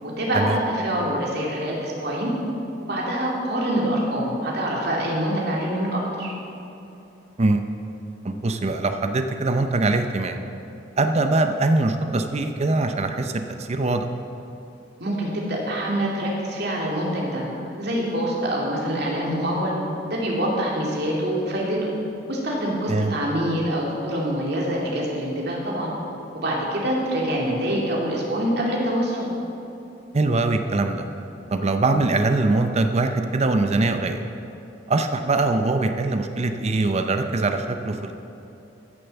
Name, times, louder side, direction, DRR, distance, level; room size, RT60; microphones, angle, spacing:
voice 1, 0.0-2.3 2.8-6.3 15.0-17.4 17.8-19.7 20.1-21.9 22.3-25.9 26.3-29.3, equal, 60° right, -3 dB, 2.7 m, -25 dB
voice 2, 8.2-10.4 11.0-14.1 22.9-23.1 30.1-31.1 31.5-34.2 34.9-38.1, right 2 dB, 35° right, 7 dB, 0.6 m, -22 dB
14.0 x 6.8 x 7.0 m, 2.8 s
head